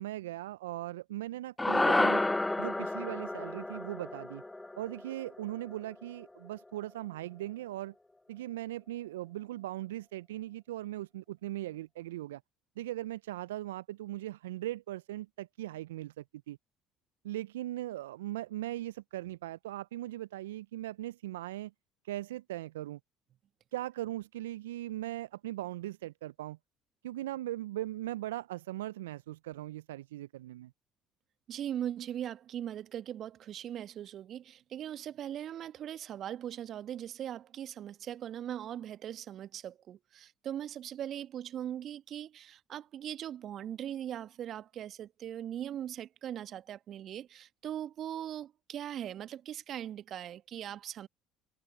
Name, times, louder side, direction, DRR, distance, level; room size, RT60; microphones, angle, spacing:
voice 1, 0.0-2.2 2.6-4.4 4.8-7.9 8.3-12.4 12.8-16.6 17.2-21.7 22.0-23.0 23.7-26.6 27.0-30.7, right 15 dB, 80° right, 0.6 m, -39 dB
sound 1, 1.6-6.0, left 2 dB, 10° left, 0.7 m, -31 dB
voice 2, 31.5-51.1, right 10 dB, 50° right, 1.6 m, -40 dB
figure-of-eight pair, 55°, 0 cm